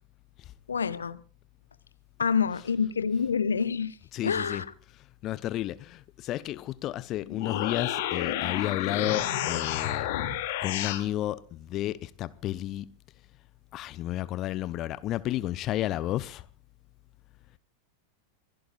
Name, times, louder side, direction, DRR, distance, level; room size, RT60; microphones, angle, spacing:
voice 1, 0.7-1.2 2.2-4.0 4.2-4.7, left 6 dB, 70° left, 1.0 m, -27 dB
voice 2, 4.1-4.6 5.2-10.1 10.6-12.9 13.7-16.4, left 14 dB, 35° left, 0.7 m, -32 dB
sound 1, 7.2-11.0, left 11 dB, 50° left, 2.7 m, -30 dB
26.0 x 17.0 x 2.5 m
figure-of-eight pair, 90°, 0 cm